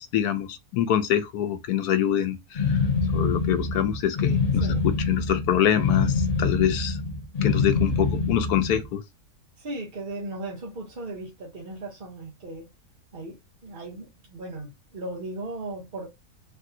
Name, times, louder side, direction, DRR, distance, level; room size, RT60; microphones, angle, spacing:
voice 1, 0.0-2.8 3.1-7.0 7.4-9.0, left 10 dB, 75° left, 1.1 m, -25 dB
sound 1, 2.5-8.9, left 4 dB, 40° left, 0.6 m, -25 dB
voice 2, 4.6-4.9 9.6-12.7 13.1-16.1, right 2 dB, 45° right, 0.7 m, -37 dB
3.3 x 2.6 x 2.6 m
omnidirectional pair, 1.7 m